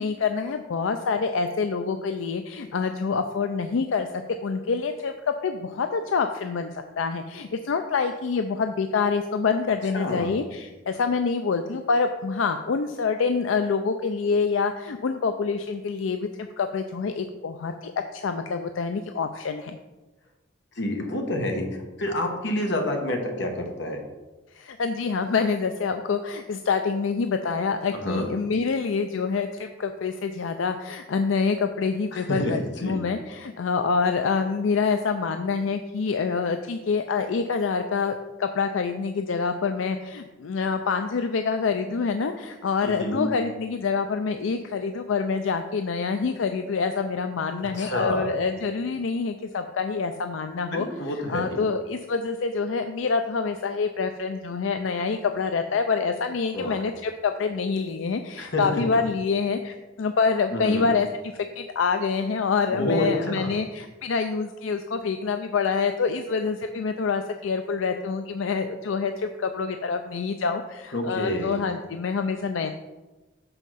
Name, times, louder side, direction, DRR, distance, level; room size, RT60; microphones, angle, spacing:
voice 1, 0.0-4.1 4.4-19.8 24.5-50.9 51.3-61.1 61.6-72.7, left 5 dB, 85° left, 7 dB, 0.4 m, -26 dB
voice 2, 9.9-10.3 20.8-21.7 22.0-24.0 28.0-28.3 32.1-33.0 42.8-43.2 47.7-48.3 50.7-51.6 56.5-56.8 58.4-58.8 60.5-60.9 62.7-63.5 70.9-71.6, left 1 dB, 65° left, 2 dB, 1.3 m, -28 dB
6.2 x 5.6 x 5.7 m, 1.1 s
head